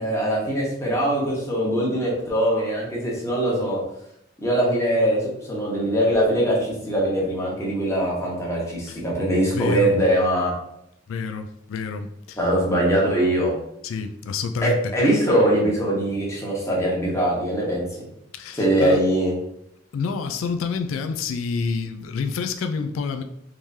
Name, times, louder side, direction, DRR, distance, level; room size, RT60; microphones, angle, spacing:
voice 1, 0.0-3.8 4.4-10.5 12.4-13.5 14.6-18.1 18.6-19.3, right 1 dB, 15° left, -4 dB, 1.0 m, -22 dB
voice 2, 9.5-10.0 11.1-12.4 13.8-14.9 18.3-19.0 19.9-23.2, left 5 dB, 90° left, 8 dB, 0.3 m, -28 dB
3.6 x 3.1 x 2.7 m, 0.77 s
head